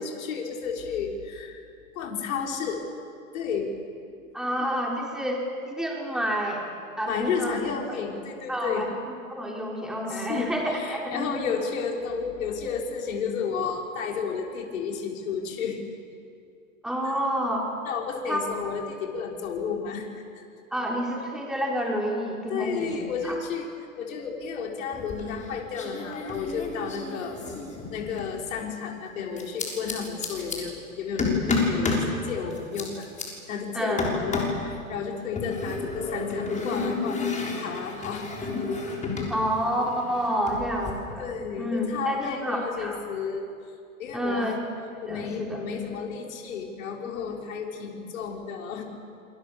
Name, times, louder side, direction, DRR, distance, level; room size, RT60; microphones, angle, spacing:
voice 1, 0.0-1.6 1.9-2.8 3.3-3.7 7.0-8.8 10.1-15.8 17.8-20.1 20.3-20.4 22.5-23.7 24.0-27.4 27.9-33.1 33.5-37.2 37.6-38.5 41.2-43.5 44.0-44.5 45.0-48.8, left 6 dB, 65° left, 0 dB, 5.9 m, -32 dB
voice 2, 4.3-6.6 7.0-7.6 7.9-8.0 8.5-11.4 16.8-17.6 18.3-18.4 20.7-22.9 23.2-23.4 33.7-34.0 39.3-41.2 41.6-43.0 44.1-44.6 45.1-45.6, equal, ahead, -2 dB, 4.2 m, -29 dB
sound 1, 24.9-25.5 25.7-28.4 29.4-30.6 31.2-32.1 32.5-33.2 34.0-34.6 35.4-39.4 39.6-40.9, left 4 dB, 15° left, 6.4 m, -30 dB
27.0 x 27.0 x 7.3 m, 2.4 s
hypercardioid pair, 110°, 43 cm